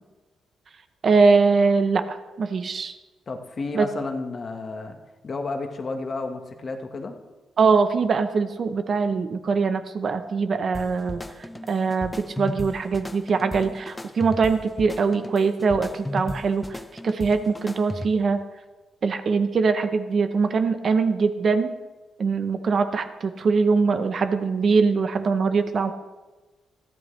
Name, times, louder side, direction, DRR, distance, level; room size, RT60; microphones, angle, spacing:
voice 1, 1.0-2.9 3.7-3.8 7.6-11.2 11.7-18.4 19.0-21.7 22.2-25.9, right 4 dB, 40° right, 9 dB, 0.8 m, -22 dB
voice 2, 3.3-5.0 5.2-7.1, left 3 dB, 35° left, 5 dB, 1.4 m, -31 dB
sound 1, 10.7-18.4, left 1 dB, 10° left, 0.5 m, -36 dB
21.5 x 14.5 x 3.3 m, 1.2 s
cardioid pair, 155°, 0 cm